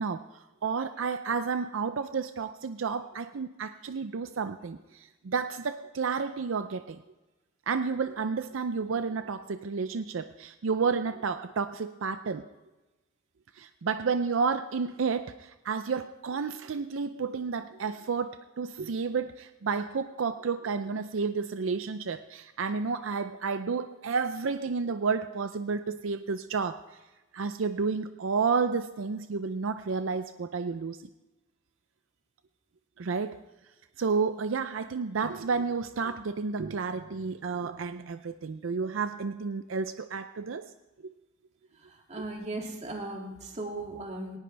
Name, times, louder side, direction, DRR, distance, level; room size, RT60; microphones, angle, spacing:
voice 1, 0.0-7.0 7.7-12.5 13.5-26.8 27.3-31.0 33.0-33.4 34.0-40.7, right 5 dB, 75° right, 10 dB, 0.5 m, -31 dB
voice 2, 42.1-44.4, right 2 dB, 35° right, 1 dB, 2.4 m, -37 dB
19.5 x 18.5 x 3.4 m, 1.1 s
head